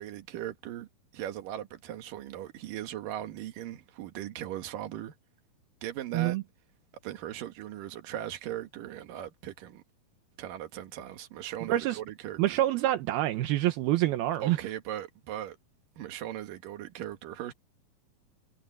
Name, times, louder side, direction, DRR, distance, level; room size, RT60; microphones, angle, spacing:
voice 1, 0.0-5.1 5.8-6.4 7.0-9.8 10.4-12.6 14.4-15.6 16.0-17.5, right 12 dB, 65° right, 3.1 m, -39 dB
voice 2, 12.4-14.6, right 14 dB, 80° right, 2.9 m, -26 dB
omnidirectional pair, 4.4 m